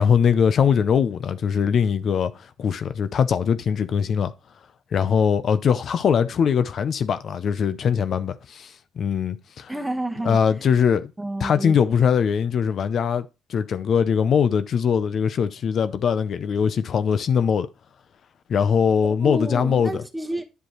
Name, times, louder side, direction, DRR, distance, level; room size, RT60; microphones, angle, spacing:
voice 1, 0.0-4.3 4.9-9.7 10.3-11.1 11.4-17.7 18.5-19.9, left 7 dB, 60° left, 0.5 m, -21 dB
voice 2, 9.7-10.7 11.2-12.0 19.0-20.4, right 1 dB, 10° right, 1.2 m, -30 dB
10.0 x 5.2 x 3.0 m
cardioid pair, 90°, 0 cm